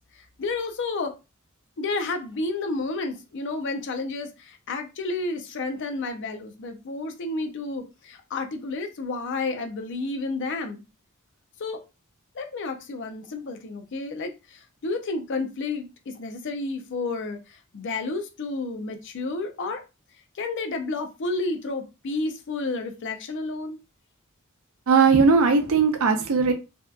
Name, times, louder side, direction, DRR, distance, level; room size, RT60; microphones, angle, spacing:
voice 1, 0.2-1.1 1.8-10.8 11.6-11.8 12.3-19.8 20.3-23.8, left 3 dB, 55° left, 0.5 m, -31 dB
voice 2, 24.9-26.5, right 5 dB, 70° right, 0.5 m, -18 dB
2.7 x 2.3 x 2.2 m
head